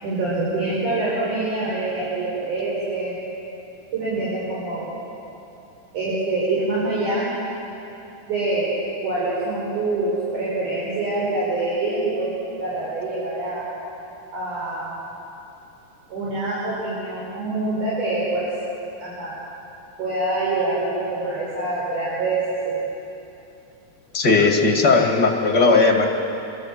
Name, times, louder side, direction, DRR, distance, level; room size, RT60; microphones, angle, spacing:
voice 1, 0.0-3.2 3.9-4.9 5.9-7.3 8.3-8.7 9.0-13.6 14.3-15.0 16.1-18.5 19.0-19.3 20.0-22.8, right 2 dB, 60° right, -7 dB, 6.8 m, -25 dB
voice 2, 24.1-26.1, left 3 dB, 35° left, 1 dB, 2.4 m, -17 dB
27.5 x 22.5 x 7.6 m, 2.9 s
omnidirectional pair, 4.1 m